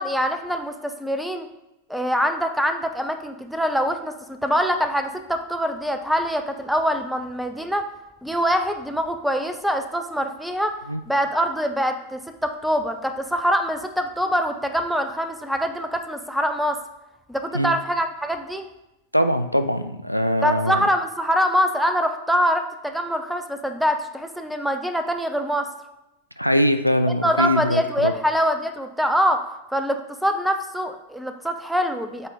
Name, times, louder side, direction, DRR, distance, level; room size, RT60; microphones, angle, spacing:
voice 1, 0.0-1.5 1.9-7.9 8.2-10.8 11.1-16.8 17.3-18.6 20.4-25.7 27.2-29.4 29.7-32.3, equal, ahead, 7 dB, 0.6 m, -24 dB
voice 2, 19.1-20.8 26.4-28.1, equal, 90° left, 8 dB, 0.4 m, -22 dB
7.9 x 4.1 x 3.7 m, 0.94 s
figure-of-eight pair, 90°, 0 cm